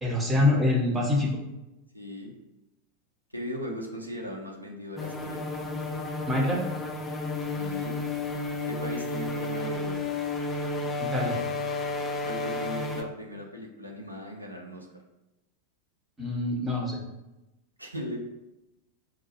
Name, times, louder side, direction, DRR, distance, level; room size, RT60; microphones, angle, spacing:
voice 1, 0.0-1.3 6.3-6.6 11.0-11.4 16.2-17.0, left 2 dB, 15° right, -2 dB, 1.0 m, -25 dB
voice 2, 1.9-2.3 3.3-5.4 7.5-8.0 8.7-10.1 12.2-14.9 17.8-18.2, equal, 85° right, 0 dB, 0.6 m, -38 dB
sound 1, 5.0-13.0, left 3 dB, 15° left, 0.5 m, -32 dB
4.6 x 2.2 x 3.1 m, 0.96 s
figure-of-eight pair, 90°, 0 cm